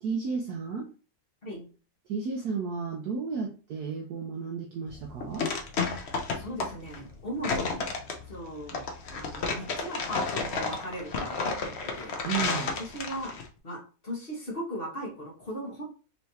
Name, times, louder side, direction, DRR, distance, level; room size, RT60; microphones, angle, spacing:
voice 1, 0.0-0.9 2.1-5.5 12.2-12.7, right 5 dB, 70° right, 2 dB, 1.0 m, -33 dB
sound 1, 4.9-13.5, left 4 dB, 70° left, 0.6 m, -32 dB
voice 2, 6.3-7.8 8.3-8.8 9.1-12.2 12.9-13.3 13.6-13.8 14.0-15.8, equal, 30° left, -4 dB, 1.5 m, -38 dB
4.6 x 3.2 x 2.8 m, 0.35 s
omnidirectional pair, 2.1 m